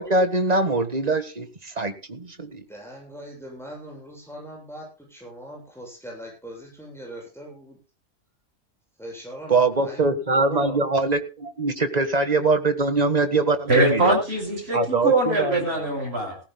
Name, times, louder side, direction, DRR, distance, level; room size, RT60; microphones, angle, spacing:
voice 1, 0.0-2.6 9.5-14.1 14.7-15.6, right 3 dB, 30° right, 9 dB, 1.7 m, -23 dB
voice 2, 2.5-7.8 9.0-10.8, equal, ahead, -2 dB, 7.8 m, -40 dB
voice 3, 13.7-16.4, right 2 dB, 50° right, 0 dB, 6.9 m, -22 dB
19.0 x 16.0 x 2.3 m, 0.31 s
omnidirectional pair, 1.3 m